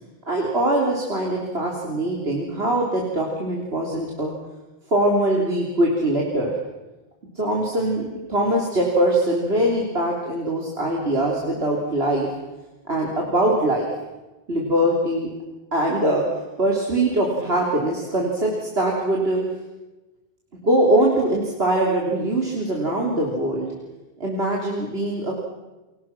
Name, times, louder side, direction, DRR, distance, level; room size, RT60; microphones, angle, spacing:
voice 1, 0.3-4.3 4.9-6.5 7.4-12.3 12.9-13.9 14.5-15.3 15.7-16.2 16.6-19.4 20.5-23.7 24.2-25.3, right 1 dB, 75° right, -2 dB, 3.7 m, -22 dB
29.0 x 23.5 x 6.0 m, 1.1 s
omnidirectional pair, 1.1 m